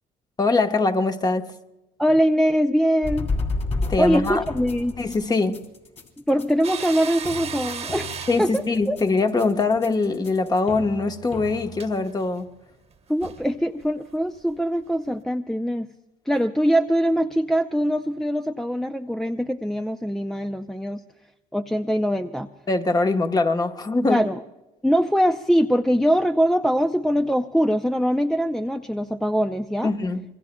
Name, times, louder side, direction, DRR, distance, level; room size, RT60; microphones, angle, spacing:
voice 1, 0.4-1.6 3.9-4.4 5.0-5.6 8.3-12.5 22.7-24.2 29.8-30.2, left 3 dB, 25° left, 1.1 m, -22 dB
voice 2, 2.0-3.3 4.0-5.0 6.3-8.1 8.4-9.0 13.1-15.9 16.3-21.0 21.5-22.5 24.1-24.3 24.8-29.9, equal, ahead, 0.5 m, -22 dB
sound 1, 3.0-12.2, left 3 dB, 40° left, 2.7 m, -32 dB
sound 2, 6.6-10.1 10.4-10.6 11.7-11.9 12.9-13.0 13.2-13.5 13.8-13.9 14.5-14.6, right 7 dB, 40° right, 1.2 m, -36 dB
26.5 x 22.0 x 2.2 m
cardioid pair, 110°, 17 cm